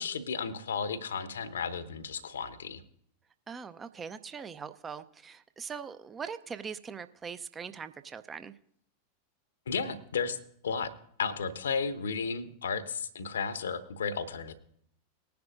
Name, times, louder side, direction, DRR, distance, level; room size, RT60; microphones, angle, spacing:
voice 1, 0.0-2.8 9.7-10.4 10.6-10.9 11.2-14.5, left 5 dB, 65° left, 14 dB, 0.9 m, -33 dB
voice 2, 3.5-8.5, right 6 dB, 20° right, 11 dB, 0.6 m, -41 dB
19.5 x 10.5 x 2.5 m, 0.65 s
figure-of-eight pair, 90°, 0 cm